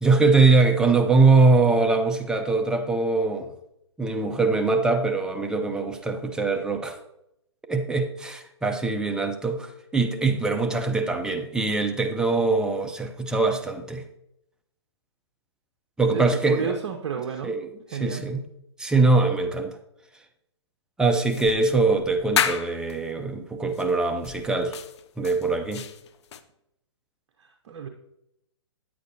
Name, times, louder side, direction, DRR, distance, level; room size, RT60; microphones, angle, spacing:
voice 1, 0.0-3.5 4.0-7.0 7.7-14.0 16.0-16.7 17.4-17.6 18.0-18.4 18.8-19.8 21.0-24.7 25.2-25.8, right 3 dB, 5° right, 4 dB, 0.6 m, -22 dB
voice 2, 16.1-17.5 17.9-18.2 27.4-27.9, right 7 dB, 60° right, 3 dB, 0.8 m, -31 dB
sound 1, 21.3-23.0 23.7-23.9 24.2-26.4, left 8 dB, 65° left, 0.7 m, -30 dB
9.1 x 8.4 x 2.8 m, 0.81 s
hypercardioid pair, 135°, 15 cm